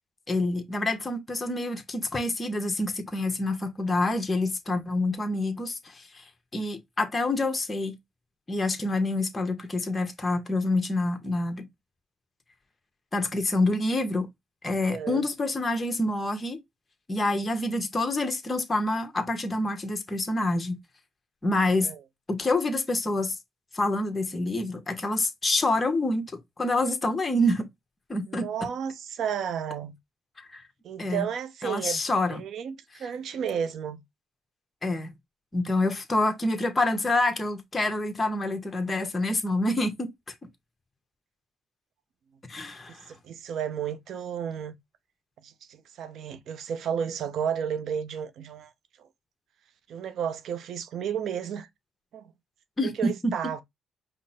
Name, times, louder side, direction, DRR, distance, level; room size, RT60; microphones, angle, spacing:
voice 1, 0.3-6.2 6.5-7.9 8.5-11.7 13.1-14.3 14.6-16.6 17.1-20.8 21.4-21.9 22.3-23.4 23.7-26.3 26.6-27.7 28.1-28.7 30.4-30.6 31.0-31.3 31.6-32.4 34.8-35.1 35.5-40.1 42.5-43.0 52.8-53.3, left 2 dB, 25° left, 1.1 m, -27 dB
voice 2, 14.9-15.3 21.8-22.0 28.3-30.0 30.8-34.0 42.9-44.8 45.4-48.7 49.0-49.1 49.9-51.7 52.1-52.3 52.8-53.6, right 8 dB, 70° right, 0.7 m, -33 dB
5.2 x 2.1 x 4.2 m
cardioid pair, 90°, 0 cm